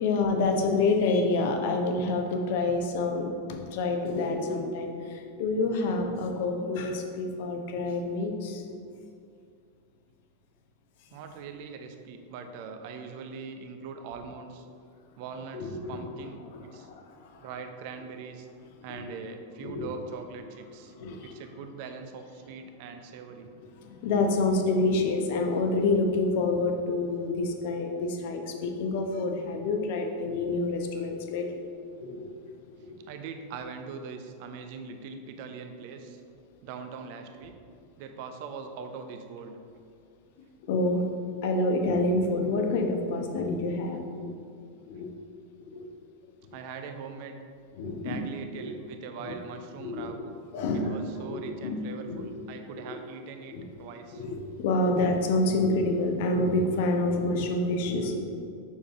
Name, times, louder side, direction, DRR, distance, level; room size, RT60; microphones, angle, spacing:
voice 1, 0.0-8.8 15.5-15.9 16.5-17.3 18.9-19.0 19.6-19.9 21.0-21.3 23.8-31.6 31.9-32.3 32.7-32.9 40.6-41.1 41.4-44.3 44.9-45.1 45.6-45.9 47.8-48.3 48.6-48.7 49.2-49.4 49.8-50.1 50.5-51.0 51.3-52.3 52.7-52.9 53.5-53.6 54.1-58.2, left 2 dB, 50° left, 4 dB, 0.9 m, -28 dB
voice 2, 11.1-14.7 15.2-16.9 17.4-18.5 18.8-20.9 21.2-23.5 33.1-36.2 36.6-37.5 38.0-39.6 46.5-47.4 48.0-50.4 50.7-54.2, right 5 dB, 45° right, 6 dB, 0.7 m, -41 dB
7.2 x 6.5 x 3.6 m, 2.3 s
figure-of-eight pair, 90°, 0 cm